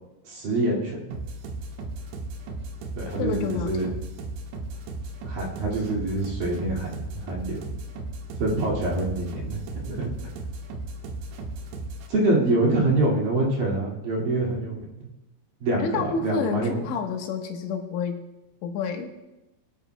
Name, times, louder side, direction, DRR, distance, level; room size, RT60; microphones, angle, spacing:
voice 1, 0.3-1.2 3.0-3.9 5.3-7.6 8.4-9.6 9.9-10.3 12.1-15.1 15.6-16.8, right 2 dB, 55° right, -3 dB, 3.6 m, -25 dB
sound 1, 1.1-12.1, right 2 dB, 80° right, 3.3 m, -36 dB
voice 2, 3.2-4.0 15.8-18.2 18.6-19.1, left 5 dB, 80° left, 4 dB, 3.5 m, -29 dB
22.5 x 12.5 x 2.2 m, 0.98 s
omnidirectional pair, 5.1 m